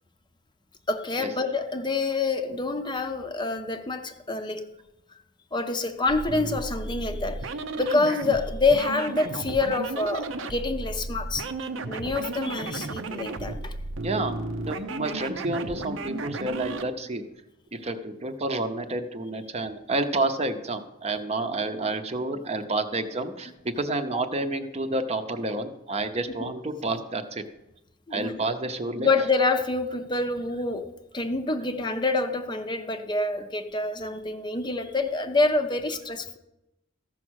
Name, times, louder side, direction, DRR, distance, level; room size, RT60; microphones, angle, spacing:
voice 1, 0.9-4.6 5.5-11.5 11.8-13.7 26.3-26.5 28.1-28.4 29.0-30.9 31.1-36.4, left 3 dB, 25° left, 0.6 m, -27 dB
sound 1, 6.0-16.9, right 2 dB, 75° right, 0.7 m, -34 dB
voice 2, 14.0-17.2 17.7-27.4 28.1-29.1, right 2 dB, 30° right, 0.7 m, -29 dB
14.0 x 6.0 x 6.3 m
head